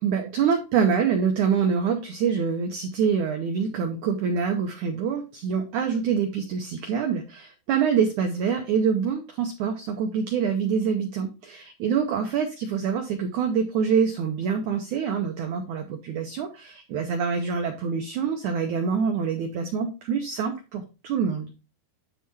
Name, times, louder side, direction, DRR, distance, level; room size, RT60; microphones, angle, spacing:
voice 1, 0.0-21.5, right 6 dB, 90° right, 4 dB, 1.7 m, -25 dB
10.0 x 3.6 x 4.2 m, 0.30 s
omnidirectional pair, 4.7 m